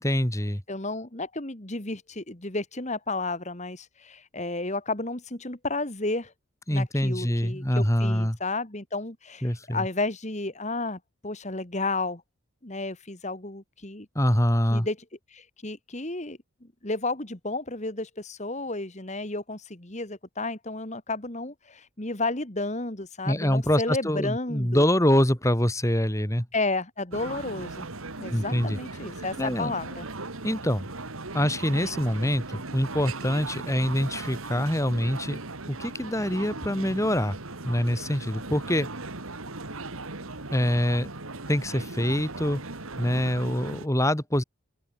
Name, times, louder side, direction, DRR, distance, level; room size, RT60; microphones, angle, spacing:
voice 1, 0.0-0.6 6.7-8.4 9.4-9.8 14.2-14.9 23.2-26.5 28.3-28.8 29.4-29.7 30.4-30.9 31.3-35.4 35.7-37.4 37.6-38.9 40.5-41.1 41.5-42.6 43.0-44.4, equal, 15° left, 3.7 m, -25 dB
voice 2, 0.7-6.3 6.7-12.2 12.6-14.1 14.7-15.0 15.3-16.4 16.8-24.9 26.5-27.9 28.2-30.1, left 2 dB, 30° left, 2.0 m, -32 dB
sound 1, 27.1-43.9, right 3 dB, 75° right, 2.4 m, -38 dB
open air
head